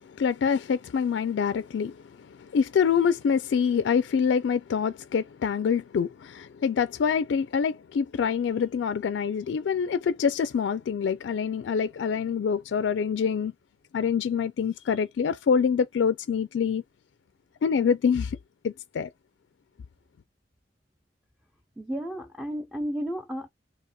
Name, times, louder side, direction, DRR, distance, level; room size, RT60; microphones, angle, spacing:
voice 1, 0.0-2.0 2.4-13.5 13.9-16.8 17.6-18.4 18.6-19.1, left 6 dB, 75° left, 0.3 m, -25 dB
voice 2, 21.8-23.5, equal, 5° right, 0.4 m, -32 dB
4.1 x 2.8 x 2.3 m
head